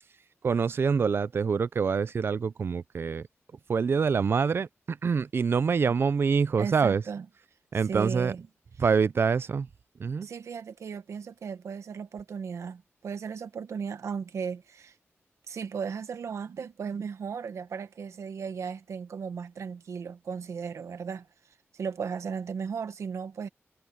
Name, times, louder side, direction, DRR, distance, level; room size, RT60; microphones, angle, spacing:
voice 1, 0.4-3.3 3.7-7.0 7.7-8.3 8.8-9.7 10.0-10.3, right 5 dB, 55° right, 0.5 m, -25 dB
voice 2, 6.6-7.3 7.9-8.5 10.2-14.9 15.5-21.3 21.7-23.5, right 6 dB, 90° right, 1.2 m, -36 dB
wide cardioid pair, 140°, 5 cm